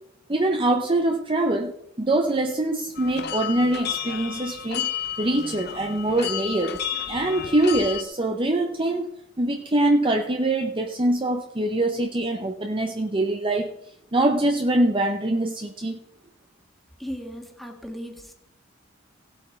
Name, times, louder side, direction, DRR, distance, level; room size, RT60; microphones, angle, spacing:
voice 1, 0.3-1.7 2.0-4.9 5.2-6.8 7.1-13.8 14.1-16.0, right 1 dB, 25° right, 4 dB, 0.8 m, -24 dB
sound 1, 3.0-8.0, left 9 dB, 55° left, 0.8 m, -32 dB
voice 2, 17.0-18.3, equal, ahead, 3 dB, 1.7 m, -36 dB
17.0 x 7.9 x 4.5 m, 0.75 s
head